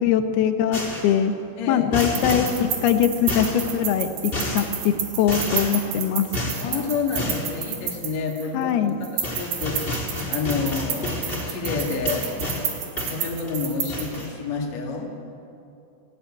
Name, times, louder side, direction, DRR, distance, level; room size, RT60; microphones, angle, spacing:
voice 1, 0.0-1.3 1.7-6.3 8.5-9.1, left 9 dB, 80° left, 8 dB, 3.1 m, -22 dB
sound 1, 0.7-1.2 1.9-2.6 3.3-3.7 4.3-4.7 5.3-5.8 6.3-6.6 7.2-7.5 8.9-9.0 9.2-12.7 13.0-13.6 13.9-14.3, left 2 dB, 15° left, 3.2 m, -30 dB
sound 2, 2.0-8.6 9.0-14.3, right 8 dB, 85° right, 3.8 m, -31 dB
voice 2, 6.6-8.7 9.0-12.3 13.1-15.1, left 4 dB, 50° left, 0 dB, 3.1 m, -29 dB
18.5 x 17.5 x 8.7 m, 2.7 s
omnidirectional pair, 4.5 m